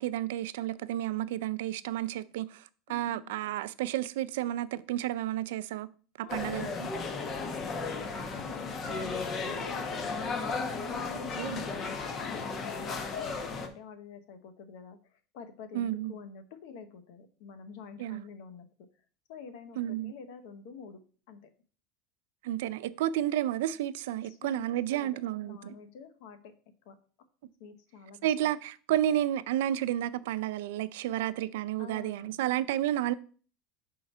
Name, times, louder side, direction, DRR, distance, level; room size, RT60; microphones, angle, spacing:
voice 1, 0.0-2.6 2.9-5.9 6.2-6.9 11.4-11.6 15.7-16.1 18.0-18.2 19.8-20.1 22.4-25.7 28.2-33.1, right 12 dB, 85° right, 0.4 m, -31 dB
voice 2, 2.9-3.3 6.2-6.4 7.0-18.7 19.3-21.0 21.3-21.4 24.2-26.5 26.8-27.0 27.6-28.5 31.0-31.1 31.8-32.3, left 5 dB, 70° left, 1.0 m, -48 dB
sound 1, 6.3-13.7, left 4 dB, 30° left, 0.9 m, -35 dB
5.7 x 3.8 x 5.4 m
supercardioid pair, 135°, 0 cm